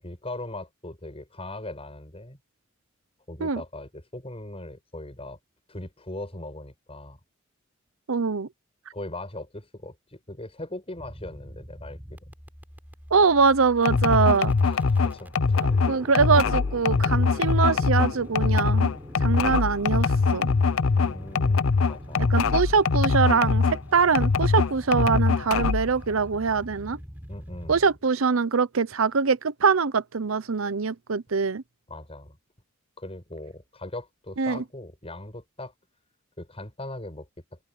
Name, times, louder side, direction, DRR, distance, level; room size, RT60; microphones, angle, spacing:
voice 1, 0.0-2.4 3.3-5.4 5.7-7.2 8.9-12.3 14.6-15.4 19.4-19.6 20.9-22.3 27.3-27.9 31.9-32.4 33.0-35.7 36.4-37.6, left 1 dB, 30° left, 8.0 m, -39 dB
voice 2, 8.1-8.5 13.1-14.5 15.9-18.9 19.2-20.5 22.2-27.0 27.7-31.6 34.4-34.6, right 5 dB, 75° right, 0.8 m, -23 dB
sound 1, 11.0-27.8, equal, 10° right, 4.0 m, -43 dB
sound 2, 13.8-23.8 24.1-25.9, left 4 dB, 80° left, 0.7 m, -22 dB
open air
head